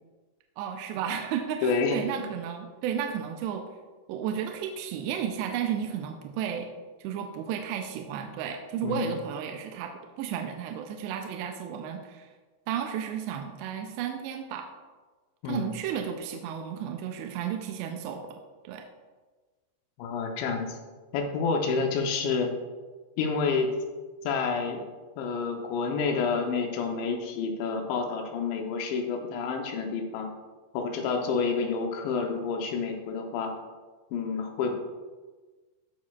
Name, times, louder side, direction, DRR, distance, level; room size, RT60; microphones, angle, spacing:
voice 1, 0.6-3.7 4.1-6.7 7.0-9.9 10.2-12.3 12.7-14.7 15.5-18.4 18.6-18.9, right 8 dB, 85° right, 4 dB, 2.7 m, -33 dB
voice 2, 1.6-2.0 8.8-9.1 15.4-15.7 20.0-20.8 21.1-22.5 23.2-23.7 24.2-24.9 25.2-30.3 30.7-33.5 34.1-34.7, left 5 dB, 85° left, 3 dB, 3.2 m, -29 dB
14.5 x 6.3 x 2.4 m, 1.3 s
omnidirectional pair, 5.1 m